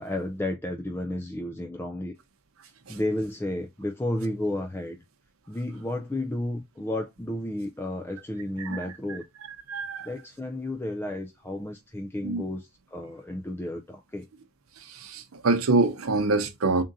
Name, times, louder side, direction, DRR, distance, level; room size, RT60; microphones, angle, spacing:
voice 1, 0.0-2.2 2.9-5.0 5.5-9.2 10.0-14.3, left 1 dB, 10° left, 0.3 m, -32 dB
voice 2, 8.6-9.2 9.7-10.1 12.2-12.4 14.9-16.8, right 3 dB, 85° right, 0.7 m, -26 dB
3.7 x 2.6 x 3.9 m
head